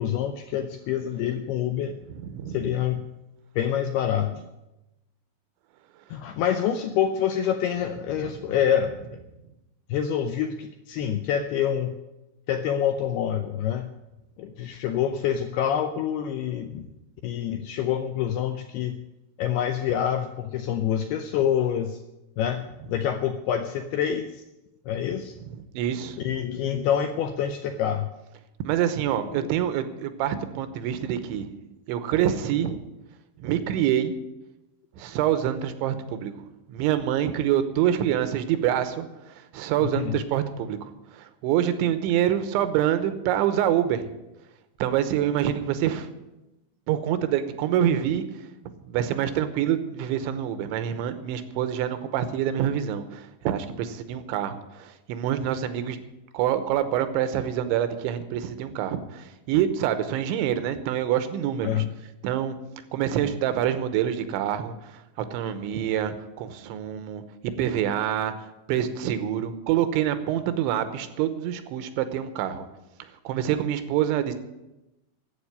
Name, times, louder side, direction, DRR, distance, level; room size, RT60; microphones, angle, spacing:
voice 1, 0.0-1.9 2.5-3.1 3.6-4.3 6.1-9.0 9.9-12.0 12.5-13.9 14.4-16.9 17.2-19.0 19.4-22.0 22.4-24.4 24.9-25.3 26.2-28.1 29.3-29.5 39.8-40.2 61.6-61.9, left 9 dB, 85° left, 7 dB, 2.3 m, -26 dB
voice 2, 2.0-2.8 6.4-6.5 8.0-8.6 22.8-23.0 25.4-26.3 28.6-31.5 31.9-32.8 33.4-34.1 35.0-36.3 36.7-44.1 44.8-46.1 46.9-48.2 48.9-56.0 56.3-61.8 62.2-62.6 62.9-64.9 65.2-67.2 67.6-68.3 68.7-72.7 73.2-74.4, right 10 dB, 85° right, 11 dB, 3.3 m, -26 dB
12.0 x 8.3 x 9.6 m, 0.97 s
omnidirectional pair, 5.4 m